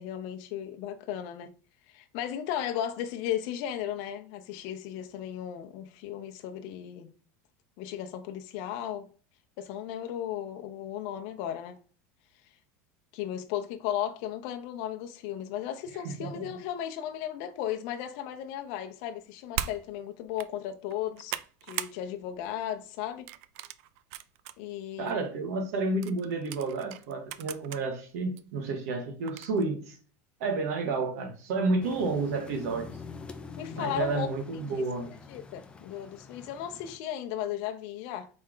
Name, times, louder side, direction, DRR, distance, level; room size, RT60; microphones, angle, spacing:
voice 1, 0.0-1.5 1.9-7.1 7.8-9.1 9.6-11.8 13.1-21.4 21.6-23.3 24.6-25.3 33.6-34.3 34.5-34.8 35.3-38.3, left 10 dB, 60° left, 0.6 m, -35 dB
voice 2, 16.0-16.5 25.0-30.0 30.4-32.9 33.7-35.1, right 3 dB, 80° right, 1.5 m, -31 dB
sound 1, 19.5-19.8 20.3-20.5 20.9-22.0 22.3-22.6 23.3-24.6 25.1-25.2 26.0-27.8 28.4-28.5 29.3-29.6, right 12 dB, 65° right, 0.4 m, -38 dB
sound 2, 31.8-37.0, left 5 dB, 15° left, 0.4 m, -45 dB
4.2 x 3.3 x 3.7 m
supercardioid pair, 150°, 8 cm